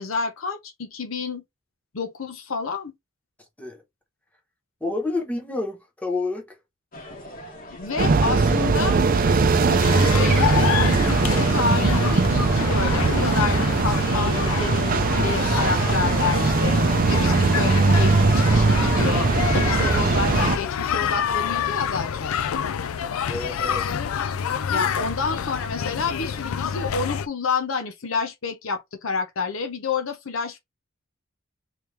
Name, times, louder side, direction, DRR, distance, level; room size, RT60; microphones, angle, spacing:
voice 1, 0.0-1.4 1.9-2.9 7.7-9.0 9.5-16.8 17.1-22.3 24.7-30.6, left 5 dB, 75° left, 0.8 m, -29 dB
voice 2, 4.8-6.5 23.3-23.9 25.0-25.1, left 3 dB, 5° left, 1.1 m, -29 dB
sound 1, 6.9-20.4, left 1 dB, 45° left, 1.3 m, -39 dB
sound 2, 8.0-20.6, right 4 dB, 45° right, 0.5 m, -20 dB
sound 3, 9.8-27.3, left 8 dB, 90° left, 0.4 m, -27 dB
3.3 x 3.1 x 3.2 m
head